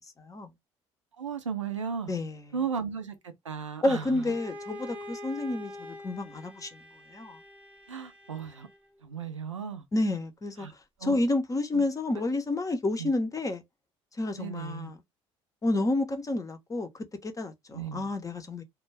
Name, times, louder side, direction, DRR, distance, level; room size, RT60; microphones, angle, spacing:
voice 1, 0.2-0.5 2.1-2.4 3.8-6.8 7.1-7.4 9.9-10.7 11.0-13.6 14.2-14.9 15.6-16.9 17.2-18.6, left 2 dB, 20° left, 0.6 m, -29 dB
voice 2, 1.2-2.1 2.5-4.3 7.9-8.7 9.0-9.8 10.6-10.7 11.0-11.2 11.7-11.8 13.0-13.1 14.4-14.9 17.7-18.1, right 6 dB, 85° right, 0.5 m, -35 dB
Bowed string instrument, 4.1-9.0, left 1 dB, 10° right, 0.8 m, -45 dB
2.2 x 2.2 x 3.2 m
figure-of-eight pair, 50°, 15 cm